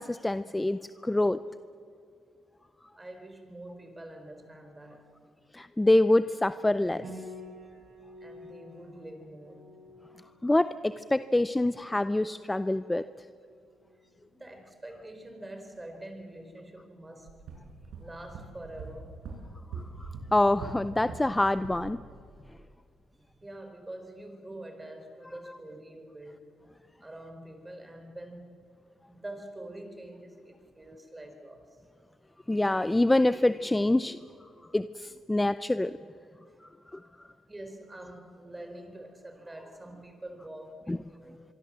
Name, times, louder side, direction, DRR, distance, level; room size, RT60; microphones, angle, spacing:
voice 1, 0.0-1.4 5.5-7.2 10.4-13.0 20.0-22.0 32.5-34.2 34.7-36.0 36.9-37.0 40.9-41.0, left 1 dB, 10° left, 14 dB, 0.5 m, -26 dB
voice 2, 3.0-5.1 8.2-9.6 14.3-17.4 18.0-19.1 23.1-26.5 27.0-28.5 29.1-31.8 36.5-36.7 37.2-41.4, right 1 dB, 15° right, 6 dB, 4.3 m, -45 dB
Piano, 7.0-16.4, left 1 dB, 60° right, 5.1 m, -52 dB
sound 1, 17.3-21.3 21.6-21.9, right 4 dB, 80° right, 7.1 m, -42 dB
24.5 x 24.0 x 7.5 m, 2.4 s
cardioid pair, 90°, 0 cm